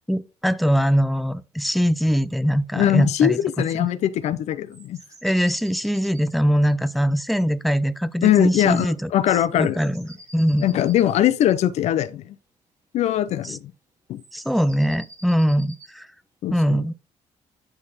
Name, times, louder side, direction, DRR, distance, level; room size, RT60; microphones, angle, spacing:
voice 1, 0.1-3.9 5.2-9.1 9.6-10.7 13.4-13.6 14.3-16.1 16.5-16.9, equal, ahead, 0.4 m, -22 dB
voice 2, 2.7-5.0 8.2-9.8 10.6-12.4 12.9-13.7 14.1-14.2 16.4-16.8, left 11 dB, 65° left, 0.5 m, -21 dB
sound 1, 4.7-7.5 9.5-11.2 14.2-15.9, right 2 dB, 25° right, 2.0 m, -48 dB
10.5 x 4.0 x 4.0 m
cardioid pair, 145°, 12 cm